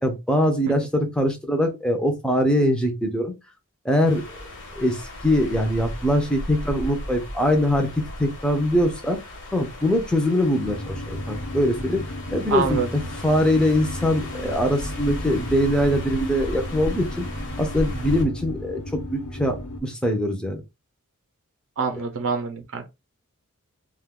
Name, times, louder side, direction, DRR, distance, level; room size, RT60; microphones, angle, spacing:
voice 1, 0.0-3.3 3.8-4.2 4.8-5.0 5.2-7.9 8.2-9.2 9.5-12.0 12.3-17.3 17.6-20.6, equal, 5° left, 0.6 m, -22 dB
sound 1, 4.0-18.2, left 1 dB, 60° left, 1.1 m, -36 dB
sound 2, 10.6-19.8, equal, 85° left, 1.0 m, -34 dB
voice 2, 12.5-12.9 21.8-22.9, right 5 dB, 60° right, 0.6 m, -25 dB
2.4 x 2.4 x 3.5 m
head